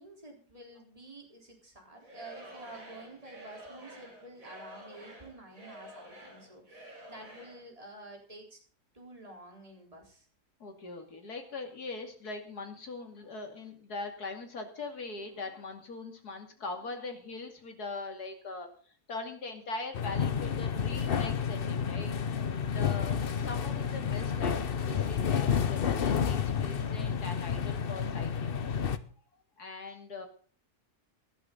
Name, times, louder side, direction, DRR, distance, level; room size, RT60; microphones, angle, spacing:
voice 1, 0.0-8.6 8.9-10.3 24.0-24.5, right 2 dB, 20° right, 1 dB, 4.1 m, -50 dB
Singing / Crowd, 2.0-7.7, equal, 55° right, 4.8 m, -49 dB
voice 2, 10.6-18.7 19.1-22.2 22.7-28.5 29.6-30.3, left 3 dB, 75° left, 5 dB, 3.0 m, -41 dB
sound 1, 19.9-29.0, left 7 dB, 45° left, 0.8 m, -30 dB
18.5 x 12.0 x 3.9 m, 0.42 s
omnidirectional pair, 1.7 m